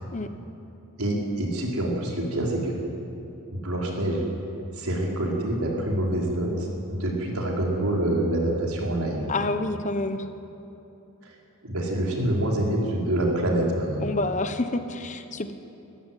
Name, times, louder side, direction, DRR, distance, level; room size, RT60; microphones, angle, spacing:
voice 1, 1.0-2.7 3.5-4.2 4.7-9.3 11.2-11.3 11.6-14.0, right 1 dB, 85° right, -2 dB, 4.8 m, -26 dB
voice 2, 9.3-10.2 14.0-15.5, left 2 dB, 35° left, 8 dB, 1.1 m, -28 dB
25.5 x 14.5 x 9.3 m, 3.0 s
head